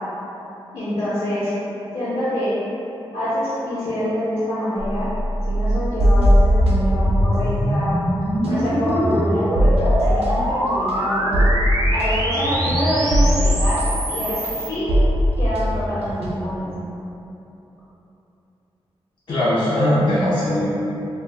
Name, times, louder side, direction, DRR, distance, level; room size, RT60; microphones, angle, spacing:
voice 1, 0.7-1.5 1.9-2.5 3.1-5.1 5.5-8.0 8.4-11.3 11.9-13.8 14.1-14.9 15.4-16.7, left 1 dB, 75° left, -12 dB, 0.8 m, -25 dB
sound 1, 4.8-14.7, right 1 dB, 35° right, 0.4 m, -24 dB
sound 2, 6.0-7.7 8.0-16.7, equal, 85° right, 0.5 m, -20 dB
voice 2, 19.3-20.7, left 1 dB, 50° left, -10 dB, 0.5 m, -19 dB
2.3 x 2.1 x 3.4 m, 2.9 s
wide cardioid pair, 95°, 10 cm